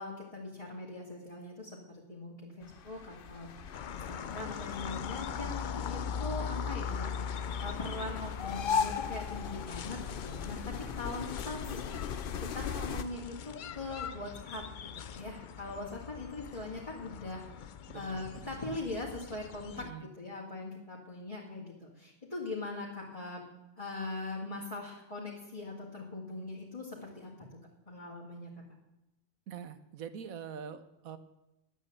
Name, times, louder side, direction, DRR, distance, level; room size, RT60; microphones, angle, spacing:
voice 1, 0.0-17.6 17.9-23.4 23.8-27.5 27.9-28.5, left 2 dB, 25° left, -5 dB, 2.6 m, -41 dB
sound 1, 2.6-13.0, left 7 dB, 50° left, 0.7 m, -39 dB
sound 2, 3.7-19.9, left 7 dB, 85° left, 0.4 m, -41 dB
voice 2, 17.9-18.5 19.7-20.1 29.5-31.2, right 7 dB, 75° right, 12 dB, 1.4 m, -44 dB
11.5 x 9.0 x 8.0 m, 0.95 s
omnidirectional pair, 1.5 m